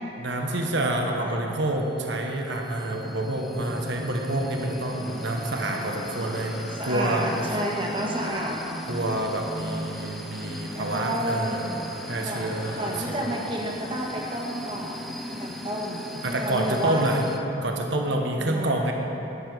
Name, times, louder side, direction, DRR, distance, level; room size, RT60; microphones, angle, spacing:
voice 1, 0.2-7.6 8.9-11.8 12.1-13.3 16.2-17.2 17.6-18.9, right 1 dB, 65° right, 1 dB, 1.1 m, -28 dB
sound 1, 1.6-17.4, equal, ahead, 0.5 m, -39 dB
sound 2, 4.8-13.1, equal, 45° left, 1.8 m, -43 dB
voice 2, 6.8-8.6 10.7-11.6 12.2-17.0 18.1-18.8, equal, 25° right, -2 dB, 1.4 m, -31 dB
12.0 x 9.7 x 4.7 m, 3.0 s
head